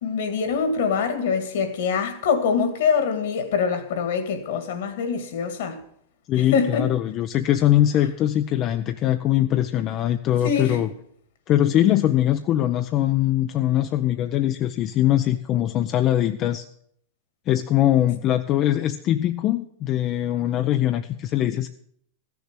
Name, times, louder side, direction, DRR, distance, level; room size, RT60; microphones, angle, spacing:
voice 1, 0.0-5.8 6.3-6.9 10.4-10.8, left 6 dB, 70° left, 2.2 m, -24 dB
voice 2, 6.3-10.9 11.5-16.6 17.5-21.7, left 12 dB, 40° left, 0.7 m, -22 dB
14.5 x 7.0 x 8.1 m
hypercardioid pair, 105°, 0 cm